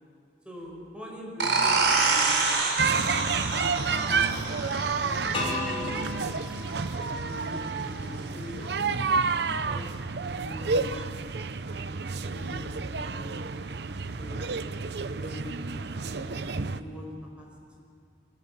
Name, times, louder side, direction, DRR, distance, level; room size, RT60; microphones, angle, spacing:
voice 1, 0.4-2.3 3.0-4.6 5.0-6.3 6.9-9.9 10.3-11.2 11.9-13.4 14.2-14.5 15.1-15.5 16.0-17.0 17.4-17.5, equal, 5° right, -2 dB, 5.3 m, -43 dB
sound 1, 1.4-6.8, right 4 dB, 85° right, 4.5 m, -27 dB
sound 2, 2.8-16.8, right 4 dB, 70° right, 0.7 m, -30 dB
sound 3, 5.3-8.2, left 2 dB, 30° left, 5.7 m, -36 dB
25.5 x 22.5 x 7.4 m, 2.3 s
head